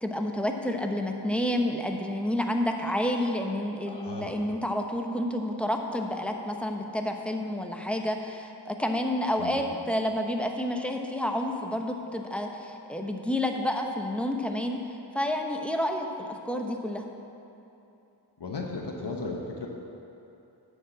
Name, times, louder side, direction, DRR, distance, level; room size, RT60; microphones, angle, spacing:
voice 1, 0.0-14.8 15.1-17.0, left 1 dB, 5° left, 3 dB, 0.9 m, -29 dB
voice 2, 3.9-4.4 9.4-9.6 18.4-19.7, left 3 dB, 75° left, 0 dB, 1.0 m, -35 dB
9.7 x 4.8 x 7.6 m, 2.8 s
cardioid pair, 45°, 42 cm